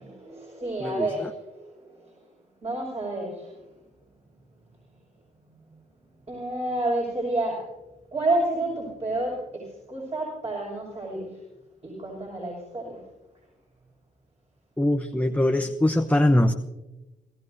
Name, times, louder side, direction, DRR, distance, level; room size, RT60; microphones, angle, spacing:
voice 1, 0.0-2.1 2.6-3.5 6.3-7.7 8.1-11.3 11.8-13.0, right 2 dB, 35° right, -4 dB, 6.2 m, -30 dB
voice 2, 0.8-1.3 14.8-16.5, left 1 dB, 10° left, 6 dB, 0.9 m, -22 dB
27.5 x 14.5 x 2.8 m, 1.0 s
supercardioid pair, 55°, 20 cm